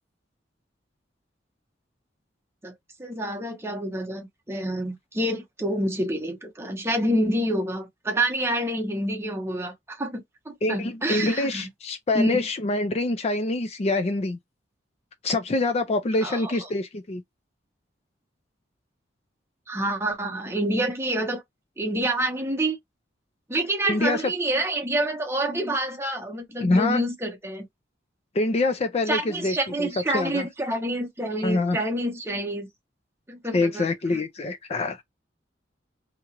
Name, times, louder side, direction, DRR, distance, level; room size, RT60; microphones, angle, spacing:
voice 1, 3.0-11.7 12.1-12.5 16.2-16.7 19.7-21.4 21.8-22.8 23.5-27.7 29.1-32.7 33.3-34.2, right 1 dB, 15° right, 0.8 m, -27 dB
voice 2, 10.6-14.4 15.2-17.2 23.9-24.2 26.6-27.0 28.3-29.9 30.1-30.5 31.4-31.8 33.5-35.0, left 2 dB, 35° left, 0.4 m, -25 dB
2.9 x 2.3 x 2.9 m
head